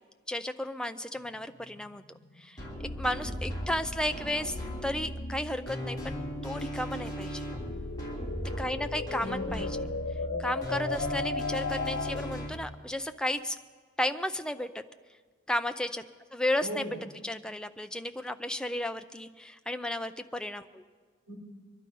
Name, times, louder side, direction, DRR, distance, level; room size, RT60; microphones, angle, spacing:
voice 1, 0.3-2.0 2.4-2.6 3.0-7.4 8.6-9.7 10.4-13.6 14.0-14.8 15.5-16.0 16.3-16.9 17.2-20.8, left 1 dB, 5° left, 8 dB, 0.4 m, -33 dB
sound 1, 1.2-12.5, left 4 dB, 70° left, 0.6 m, -38 dB
sound 2, 2.6-12.5, equal, 20° left, 2.9 m, -37 dB
voice 2, 9.2-10.5 16.6-17.0 21.3-21.4, equal, 65° right, -1 dB, 4.6 m, -41 dB
23.0 x 11.5 x 5.3 m, 1.5 s
head